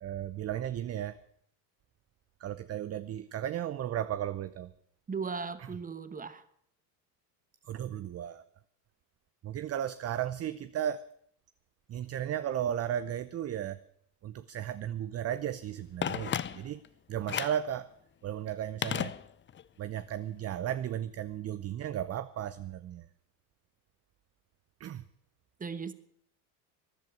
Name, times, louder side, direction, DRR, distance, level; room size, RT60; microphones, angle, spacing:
voice 1, 0.0-1.2 2.4-4.7 7.7-8.4 9.4-11.0 11.9-13.8 14.2-16.8 17.1-17.9 18.2-19.1 19.8-23.0 24.8-25.0, right 10 dB, 35° right, 14 dB, 0.6 m, -35 dB
voice 2, 5.1-6.4 25.6-25.9, right 5 dB, 15° right, 13 dB, 1.2 m, -37 dB
Telephone, 16.0-16.9 17.3-17.7 18.8-19.7 20.0-20.1, left 9 dB, 25° left, 0.6 m, -34 dB
14.5 x 10.5 x 8.4 m, 0.67 s
supercardioid pair, 85°, 46 cm